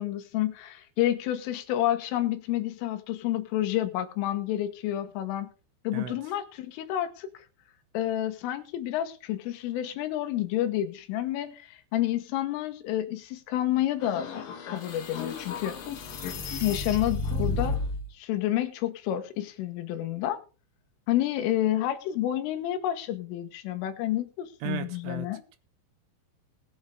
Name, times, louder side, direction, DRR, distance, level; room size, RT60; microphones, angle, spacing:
voice 1, 0.0-5.5 5.9-7.3 8.0-14.3 14.7-15.8 16.6-17.8 18.1-20.4 21.1-25.4, left 13 dB, 85° left, 3.7 m, -29 dB
sound 1, 14.0-18.0, left 3 dB, 55° left, 2.8 m, -32 dB
voice 2, 24.6-25.6, right 11 dB, 80° right, 3.3 m, -36 dB
19.5 x 8.0 x 3.5 m
omnidirectional pair, 5.8 m